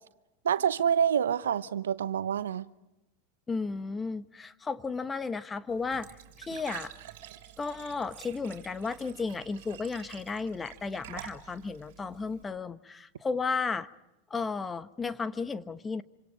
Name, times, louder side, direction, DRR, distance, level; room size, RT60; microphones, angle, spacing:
voice 1, 0.4-2.7 6.5-6.6, right 8 dB, 80° right, 0.9 m, -27 dB
voice 2, 3.5-6.9 7.6-13.9 14.3-16.0, left 4 dB, 20° left, 1.1 m, -34 dB
Glass / Trickle dribble / Fill (with liquid), 5.7-12.4, right 12 dB, 65° right, 3.4 m, -48 dB
27.0 x 26.0 x 5.0 m
hypercardioid pair, 95°, 0 cm